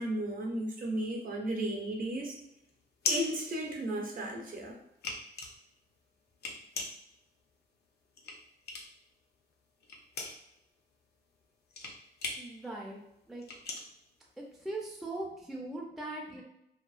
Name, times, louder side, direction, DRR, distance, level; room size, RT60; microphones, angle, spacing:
voice 1, 0.0-2.3 3.1-4.7, right 1 dB, 50° right, 0 dB, 0.6 m, -34 dB
Latch Clicks, 1.7-4.3 4.7-9.1 9.4-14.9, left 3 dB, 65° left, 0.5 m, -39 dB
voice 2, 12.4-13.0 13.3-13.4 14.4-16.4, right 2 dB, ahead, -2 dB, 0.4 m, -40 dB
2.8 x 2.0 x 2.4 m, 0.81 s
wide cardioid pair, 135°, 18 cm